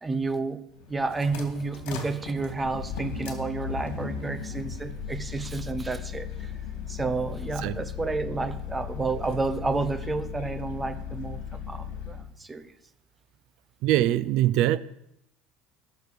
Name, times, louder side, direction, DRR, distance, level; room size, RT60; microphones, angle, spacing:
voice 1, 0.0-0.6 0.9-6.5 6.9-12.7, right 3 dB, 10° right, 0.8 m, -31 dB
sound 1, 0.7-12.3, left 7 dB, 80° left, 2.7 m, -37 dB
voice 2, 13.8-14.8, right 13 dB, 60° right, 0.4 m, -23 dB
19.0 x 6.6 x 5.1 m
cardioid pair, 160°, 0 cm